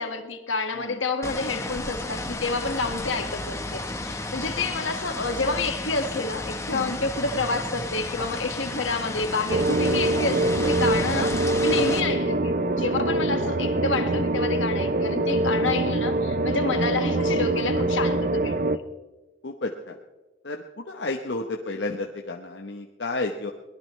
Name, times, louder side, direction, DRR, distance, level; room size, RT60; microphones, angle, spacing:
voice 1, 0.0-18.8, left 3 dB, 75° left, 6 dB, 1.8 m, -29 dB
sound 1, 1.2-12.0, left 2 dB, 15° left, 1.1 m, -33 dB
voice 2, 6.7-7.0 16.5-16.7 19.4-20.0 20.4-23.5, left 2 dB, 60° left, 2 dB, 1.1 m, -32 dB
sound 2, 9.5-18.8, right 2 dB, 45° right, 0.6 m, -24 dB
23.0 x 18.5 x 3.2 m, 1.2 s
head